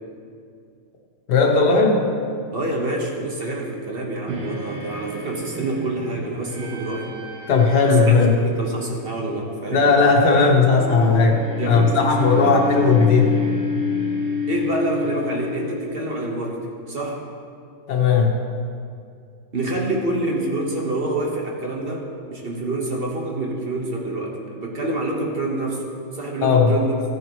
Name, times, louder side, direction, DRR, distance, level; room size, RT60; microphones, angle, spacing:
voice 1, 1.3-2.0 7.5-8.3 9.7-11.4 11.7-13.4 17.9-18.3 26.4-26.7, left 4 dB, 60° left, 1 dB, 1.7 m, -16 dB
voice 2, 2.5-7.1 7.8-9.9 11.6-12.6 14.5-17.2 19.5-25.8 26.1-26.9, right 2 dB, 35° right, -1 dB, 1.3 m, -27 dB
sound 1, 4.3-16.3, left 2 dB, 70° right, 2.1 m, -29 dB
15.5 x 9.3 x 3.2 m, 2.4 s
omnidirectional pair, 2.1 m